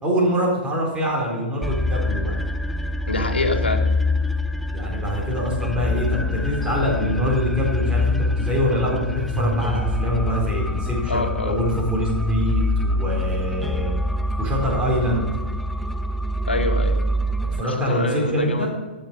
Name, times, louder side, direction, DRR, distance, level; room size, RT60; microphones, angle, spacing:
voice 1, 0.0-2.3 4.7-13.9 14.4-15.3 17.5-18.7, equal, 15° right, -3 dB, 4.2 m, -24 dB
sound 1, 1.6-17.6, left 2 dB, 5° left, 0.3 m, -25 dB
voice 2, 3.1-3.9 11.1-11.6 16.5-17.0 17.6-18.7, left 2 dB, 75° left, 5 dB, 1.8 m, -25 dB
13.0 x 7.8 x 5.2 m, 1.3 s
figure-of-eight pair, 115°, 6 cm